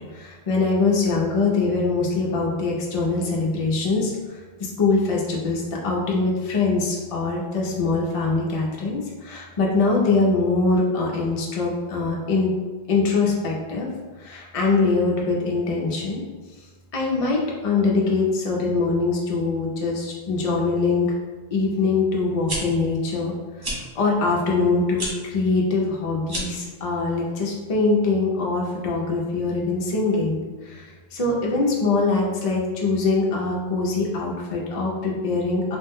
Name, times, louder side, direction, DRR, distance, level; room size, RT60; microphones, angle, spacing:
voice 1, 0.1-12.5 12.9-13.9 14.2-16.2 16.9-21.2 21.5-35.8, left 3 dB, 45° left, -3 dB, 0.5 m, -23 dB
sound 1, 22.3-22.6 23.6-23.8 24.9-25.1 26.2-26.6, right 1 dB, 30° right, 0.5 m, -29 dB
3.0 x 2.1 x 3.4 m, 1.4 s
omnidirectional pair, 1.1 m